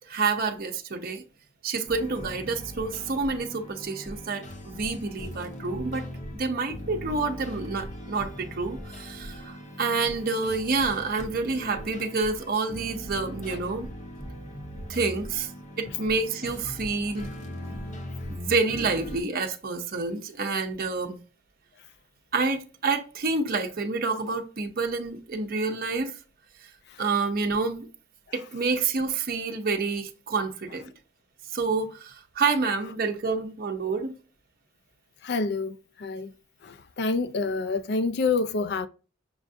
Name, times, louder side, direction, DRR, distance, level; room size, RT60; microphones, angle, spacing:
voice 1, 0.1-1.2 1.6-6.0 6.3-13.9 14.9-15.5 15.8-17.3 17.6-17.7 18.3-21.2 22.3-26.2 27.0-27.9 28.3-30.8 31.5-34.1, right 4 dB, 50° right, 0.6 m, -28 dB
sound 1, 1.9-19.2, equal, 35° left, 0.8 m, -40 dB
voice 2, 35.2-36.3 36.6-38.9, left 4 dB, 55° left, 0.4 m, -28 dB
6.2 x 2.5 x 2.5 m
head